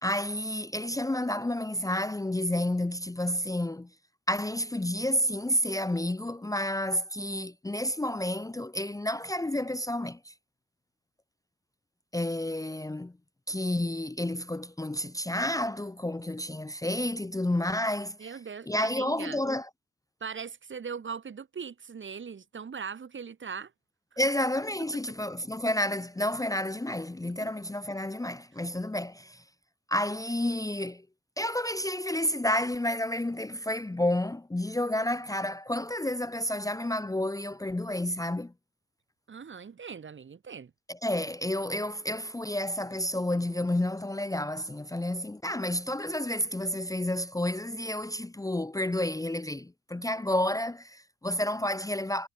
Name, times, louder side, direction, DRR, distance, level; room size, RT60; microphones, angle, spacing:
voice 1, 0.0-3.9 4.3-10.3 12.1-13.1 13.5-18.3 18.7-19.7 24.2-29.4 29.9-31.0 31.4-38.5 40.9-52.3, left 1 dB, 10° left, 1.1 m, -30 dB
voice 2, 18.2-19.4 20.2-23.7 24.1-24.2 39.3-40.7, right 6 dB, 30° right, 1.6 m, -40 dB
wide cardioid pair, 170°, 37 cm